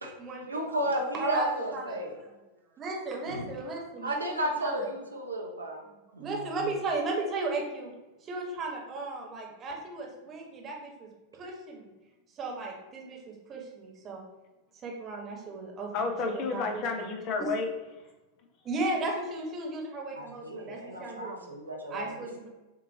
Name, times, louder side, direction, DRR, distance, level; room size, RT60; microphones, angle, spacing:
voice 1, 0.4-2.2 3.3-3.6 4.0-5.8 6.1-6.8 20.1-22.3, right 1 dB, 80° right, 0 dB, 0.7 m, -33 dB
voice 2, 1.2-2.0 2.8-4.2 4.6-4.9 6.2-7.9 8.3-11.1 11.4-11.9 12.4-14.2 14.8-15.9 16.2-16.8 17.4-17.5 18.6-21.4 21.9-22.5, right 2 dB, 25° right, -1 dB, 1.1 m, -35 dB
voice 3, 15.9-17.7, left 4 dB, 40° left, 4 dB, 0.6 m, -31 dB
6.5 x 2.4 x 2.8 m, 1.1 s
figure-of-eight pair, 90°, 0 cm